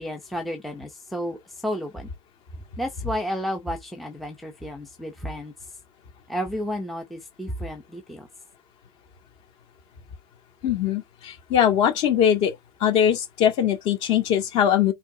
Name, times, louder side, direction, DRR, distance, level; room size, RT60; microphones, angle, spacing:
voice 1, 0.0-2.1 2.8-5.5 6.3-8.3, equal, ahead, 0.8 m, -32 dB
voice 2, 10.6-12.5 12.8-14.9, left 9 dB, 35° left, 2.1 m, -21 dB
8.8 x 3.6 x 3.8 m
supercardioid pair, 165°, 18 cm